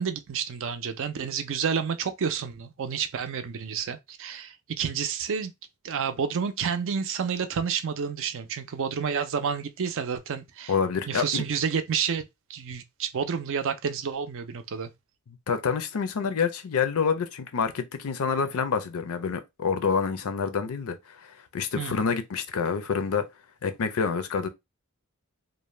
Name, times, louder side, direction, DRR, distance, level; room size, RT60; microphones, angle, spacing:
voice 1, 0.0-5.5 5.8-10.7 11.1-12.2 12.5-14.9 21.8-22.0, right 6 dB, 60° right, 0.4 m, -30 dB
voice 2, 10.7-11.4 15.5-21.0 21.2-23.3 23.6-24.5, left 6 dB, 70° left, 0.5 m, -27 dB
2.6 x 2.1 x 3.1 m
head